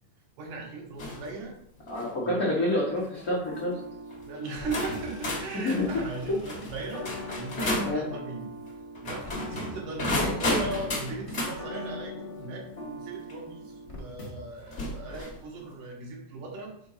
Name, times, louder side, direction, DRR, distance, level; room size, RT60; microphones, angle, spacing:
voice 1, 0.4-1.5 2.2-2.4 4.2-7.1 7.4-8.5 9.0-16.7, right 3 dB, 75° right, -1 dB, 2.9 m, -38 dB
sound 1, 1.0-1.3 1.8-2.1 3.0-3.2 4.1-4.2 4.7-8.0 8.9-11.6 13.3-13.4 14.7-15.4, left 1 dB, 40° left, 1.0 m, -32 dB
voice 2, 1.9-3.8 5.6-5.9 7.8-8.0 10.4-10.6, left 1 dB, 75° left, -5 dB, 0.8 m, -28 dB
lo fi, 3.4-14.6 15.1-15.2, left 1 dB, 60° left, 0.3 m, -42 dB
5.9 x 3.8 x 5.7 m, 0.70 s
omnidirectional pair, 3.8 m